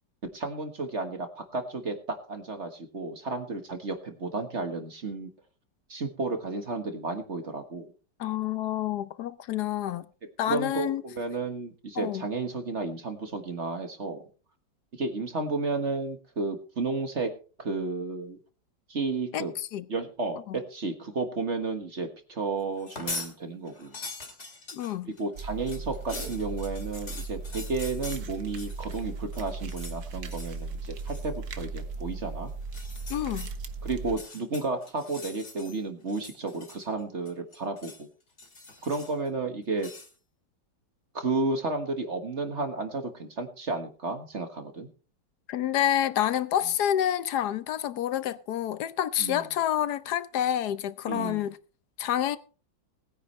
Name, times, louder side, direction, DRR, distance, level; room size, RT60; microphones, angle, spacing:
voice 1, 0.3-5.3 5.9-7.9 10.5-14.2 14.9-17.3 17.6-18.4 18.9-19.5 19.9-24.0 25.0-32.5 33.8-38.1 38.8-39.9 41.1-44.9 49.2-49.4 51.1-51.4, right 3 dB, 40° right, 1.6 m, -32 dB
voice 2, 8.2-10.1 10.4-11.0 12.0-12.2 19.3-19.8 20.5-20.6 24.7-25.1 33.1-33.5 45.5-51.6 52.0-52.4, left 11 dB, 65° left, 1.2 m, -28 dB
sound 1, 22.8-23.3 23.7-29.0 29.3-30.0 30.3-30.6 31.0-31.3 32.6-33.5 34.0-35.8 36.1-37.0 37.3-38.0 38.4-39.3 39.8-40.1, left 2 dB, 40° left, 2.6 m, -42 dB
sound 2, 25.4-34.2, right 4 dB, 60° right, 1.6 m, -37 dB
20.0 x 9.9 x 3.2 m
omnidirectional pair, 2.0 m